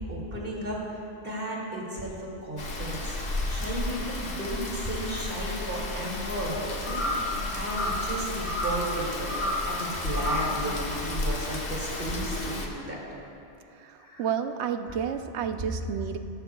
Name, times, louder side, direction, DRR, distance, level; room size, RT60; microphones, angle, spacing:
voice 1, 0.1-3.2 3.5-7.0 7.5-9.4 9.6-13.0 14.0-14.3 15.7-15.8, right 1 dB, 50° right, -4 dB, 2.6 m, -34 dB
Rain, 2.6-12.7, left 2 dB, 65° left, 1.5 m, -33 dB
sound 1, 6.9-7.3 7.6-8.1 8.5-8.9 9.3-9.7 10.1-10.6, left 1 dB, 5° right, 2.6 m, -30 dB
voice 2, 13.7-16.2, right 8 dB, 75° right, 8 dB, 0.9 m, -31 dB
17.5 x 13.5 x 2.3 m, 2.6 s
omnidirectional pair, 1.2 m